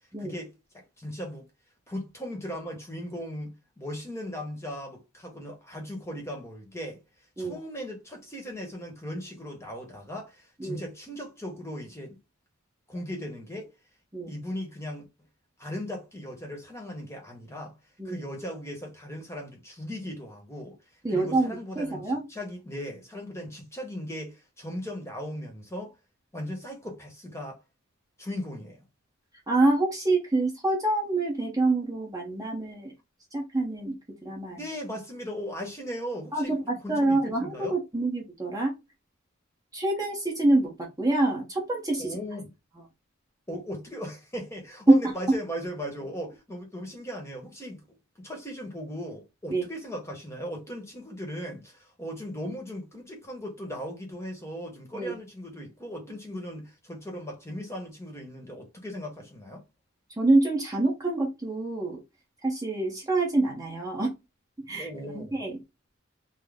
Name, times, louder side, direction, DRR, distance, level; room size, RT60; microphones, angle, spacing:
voice 1, 0.2-1.5 1.9-7.0 7.4-12.2 12.9-13.7 14.3-15.0 15.6-17.7 18.0-20.8 21.1-22.0 22.3-25.9 26.3-27.6 28.2-28.8 34.5-37.7 42.0-42.5 43.5-47.8 48.2-59.6 64.7-65.3, equal, 15° left, 1.0 m, -38 dB
voice 2, 21.0-22.3 29.5-32.9 33.3-33.9 34.2-34.6 36.3-38.7 39.7-42.2 45.0-45.1 49.5-49.6 54.9-55.1 60.2-62.0 62.4-64.1 64.7-64.9 65.1-65.6, right 2 dB, 15° right, 0.8 m, -26 dB
3.9 x 2.0 x 3.4 m
head